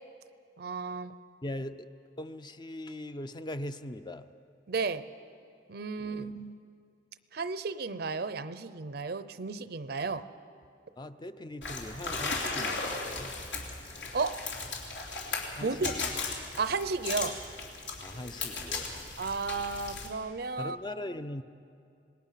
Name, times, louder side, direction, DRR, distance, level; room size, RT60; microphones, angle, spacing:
voice 1, 0.6-1.1 4.7-5.0 5.7-6.6 7.3-10.3 14.1-14.4 15.6-15.9 16.6-17.4 19.2-20.8, right 4 dB, 60° right, 13 dB, 0.7 m, -33 dB
voice 2, 1.4-1.9 2.2-4.2 6.0-6.3 11.0-13.3 15.6-16.1 18.0-19.0 20.6-21.4, left 1 dB, 25° left, 10 dB, 0.6 m, -40 dB
sound 1, 11.6-20.1, left 3 dB, 85° left, 3.4 m, -36 dB
26.5 x 19.5 x 5.8 m, 2.5 s
head